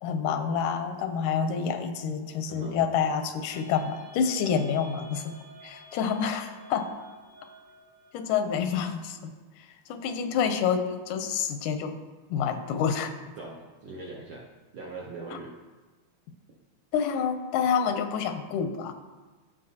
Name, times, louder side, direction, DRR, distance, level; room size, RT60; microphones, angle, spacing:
voice 1, 0.0-5.3 5.6-6.9 8.1-9.3 9.9-12.0 12.3-13.1 15.3-15.4 16.9-18.9, left 7 dB, 90° left, 8 dB, 2.2 m, -28 dB
voice 2, 2.4-2.8 13.4-14.5 14.7-15.5, right 3 dB, 75° right, -3 dB, 1.2 m, -41 dB
sound 1, 3.5-8.6, right 1 dB, 55° right, 3.5 m, -50 dB
14.5 x 5.4 x 2.8 m, 1.3 s
omnidirectional pair, 3.5 m